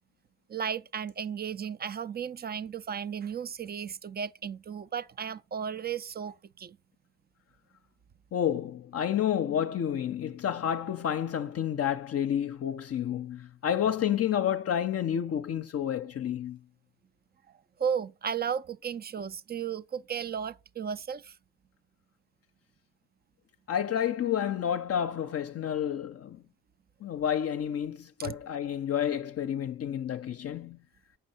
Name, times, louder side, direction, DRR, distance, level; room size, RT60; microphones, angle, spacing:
voice 1, 0.5-6.8 17.8-21.4 28.2-28.4, right 7 dB, 30° right, 0.4 m, -34 dB
voice 2, 8.3-16.6 23.7-26.4 27.0-30.8, left 9 dB, 50° left, 0.6 m, -30 dB
7.0 x 5.4 x 4.2 m
supercardioid pair, 70°, 32 cm